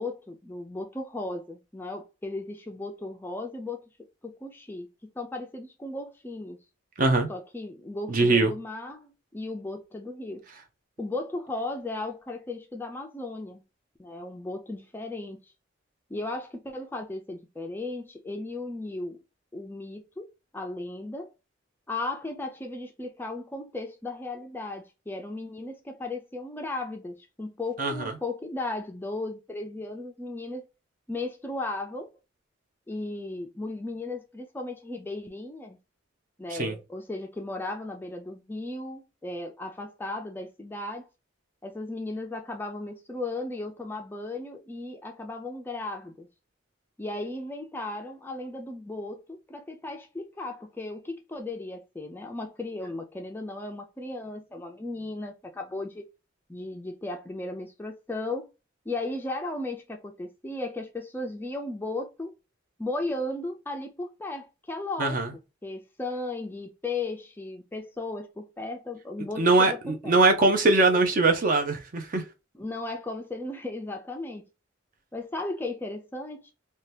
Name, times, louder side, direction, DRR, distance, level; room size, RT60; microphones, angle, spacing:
voice 1, 0.0-3.8 4.2-4.9 5.2-6.6 7.3-10.4 11.0-13.6 14.0-15.4 16.1-19.2 19.5-21.3 21.9-30.7 31.1-32.1 32.9-35.8 36.4-41.1 41.6-46.3 47.0-56.1 56.5-58.5 58.9-62.3 62.8-65.2 65.6-70.2 72.5-74.5 75.1-76.5, left 2 dB, 10° left, 0.3 m, -36 dB
voice 2, 7.0-7.3 8.1-8.5 27.8-28.1 36.5-36.7 65.0-65.3 69.4-72.2, right 3 dB, 45° right, 0.5 m, -22 dB
2.7 x 2.2 x 3.2 m
head